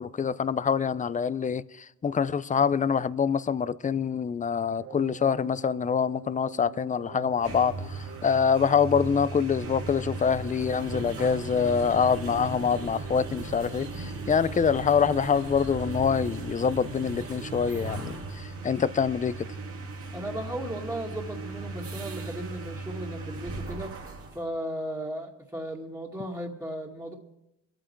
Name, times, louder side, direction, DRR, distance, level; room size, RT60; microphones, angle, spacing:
voice 1, 0.0-19.5, left 6 dB, 25° left, 0.5 m, -25 dB
sound 1, 4.8-17.3, right 8 dB, 65° right, 1.1 m, -48 dB
sound 2, 7.3-24.4, right 3 dB, 50° right, 2.2 m, -37 dB
voice 2, 20.1-27.1, right 1 dB, 10° right, 2.2 m, -36 dB
23.5 x 9.0 x 4.6 m
cardioid pair, 90°, 30 cm